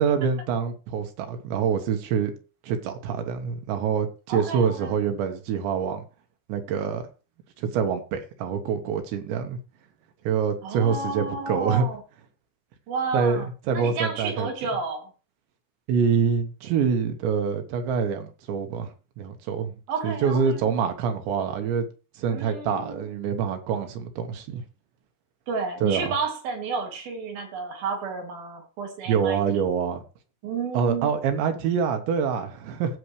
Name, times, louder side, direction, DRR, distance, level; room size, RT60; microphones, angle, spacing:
voice 1, 0.0-2.3 2.6-6.0 6.5-7.0 7.6-9.6 10.3-11.9 13.1-14.5 15.9-19.8 20.0-21.9 22.2-24.6 25.8-26.1 29.1-30.0 30.7-33.0, right 6 dB, 80° right, 3.5 m, -26 dB
voice 2, 4.3-5.0 10.6-12.0 12.9-13.5 13.7-15.1 19.9-20.7 22.3-23.1 25.5-29.4 30.4-31.1, right 4 dB, 60° right, 3.6 m, -31 dB
17.0 x 6.8 x 3.2 m
omnidirectional pair, 5.2 m